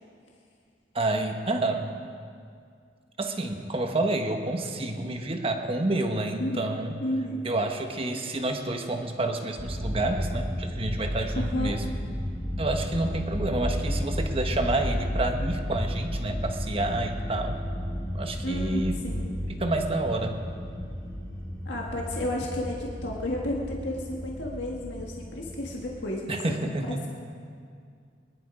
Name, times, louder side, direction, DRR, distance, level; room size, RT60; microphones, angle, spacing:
voice 1, 0.9-1.9 3.2-6.9 7.4-11.8 12.6-17.6 18.1-19.0 19.5-20.4 26.3-27.0, right 2 dB, 30° right, 4 dB, 1.2 m, -29 dB
voice 2, 7.0-7.4 11.3-11.7 18.4-19.3 21.6-27.1, left 1 dB, 75° left, -2 dB, 1.7 m, -32 dB
sound 1, 9.6-25.9, equal, 15° left, 2.0 m, -33 dB
22.0 x 11.5 x 5.0 m, 2.2 s
head